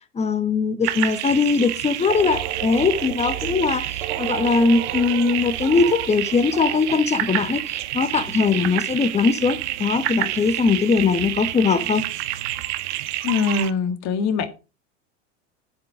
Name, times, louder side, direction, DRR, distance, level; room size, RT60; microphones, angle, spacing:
voice 1, 0.1-12.1, left 4 dB, 15° left, 1.3 m, -21 dB
sound 1, 0.8-13.7, right 15 dB, 65° right, 1.2 m, -28 dB
sound 2, 2.1-6.7, right 9 dB, 85° right, 1.7 m, -34 dB
voice 2, 13.2-14.5, left 5 dB, 45° left, 1.9 m, -23 dB
10.5 x 7.7 x 5.1 m
hypercardioid pair, 110°, 37 cm